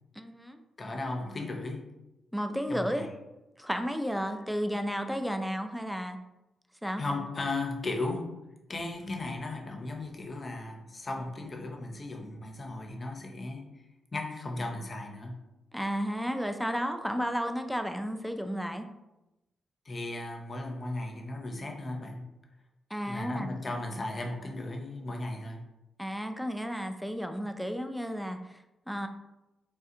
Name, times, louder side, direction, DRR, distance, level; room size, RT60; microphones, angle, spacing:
voice 1, 0.2-0.6 2.3-3.1 3.6-6.2 6.8-7.0 15.7-18.9 22.9-23.5 26.0-29.1, equal, ahead, 6 dB, 0.4 m, -33 dB
voice 2, 0.8-1.9 2.7-3.1 7.0-8.3 8.7-13.7 14.1-15.4 19.9-22.2 23.1-25.6, left 2 dB, 45° left, 2 dB, 0.6 m, -36 dB
3.3 x 2.3 x 2.8 m, 0.97 s
hypercardioid pair, 45°, 0 cm